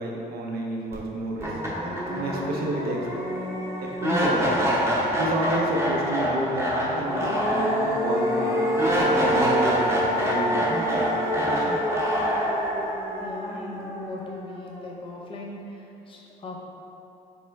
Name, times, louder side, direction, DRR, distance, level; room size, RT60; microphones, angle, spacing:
voice 1, 0.0-1.6 2.1-3.1 3.8-8.7 9.1-11.8, right 1 dB, 65° right, -1 dB, 0.7 m, -30 dB
sound 1, 0.9-1.0 1.4-14.5, equal, 15° right, 0.8 m, -25 dB
Wind instrument woodwind instrument, 6.6-10.5, left 8 dB, 65° left, 0.4 m, -37 dB
voice 2, 13.2-16.6, left 2 dB, 30° left, -2 dB, 0.7 m, -39 dB
4.3 x 3.2 x 3.3 m, 2.7 s
cardioid pair, 110°, 17 cm